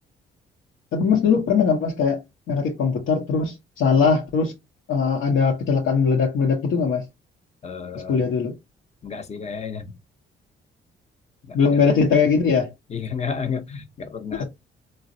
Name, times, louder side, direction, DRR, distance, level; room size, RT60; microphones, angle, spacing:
voice 1, 0.9-2.2 2.5-4.5 4.9-7.0 8.1-8.5 11.5-12.7 14.4-14.5, left 5 dB, 75° left, 0.8 m, -20 dB
voice 2, 7.6-8.3 9.0-9.9 11.5-12.0 12.9-14.4, left 6 dB, 35° left, 0.7 m, -32 dB
3.9 x 2.0 x 2.6 m
cardioid pair, 90°, 20 cm